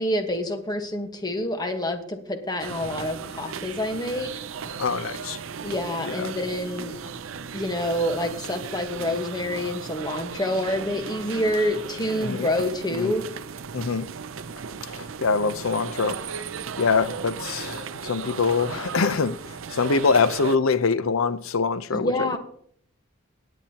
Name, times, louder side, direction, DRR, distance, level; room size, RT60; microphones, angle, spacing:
voice 1, 0.0-4.3 5.6-7.0 7.5-13.3 21.9-22.4, left 1 dB, 20° left, 1.3 m, -27 dB
sound 1, 2.6-20.6, right 6 dB, 65° right, 0.6 m, -36 dB
voice 2, 4.8-5.4 6.1-6.3 12.2-12.5 12.9-13.1 13.7-14.1 14.8-16.2 16.8-19.4 19.7-22.4, left 4 dB, 75° left, 0.6 m, -24 dB
17.5 x 9.0 x 2.9 m
head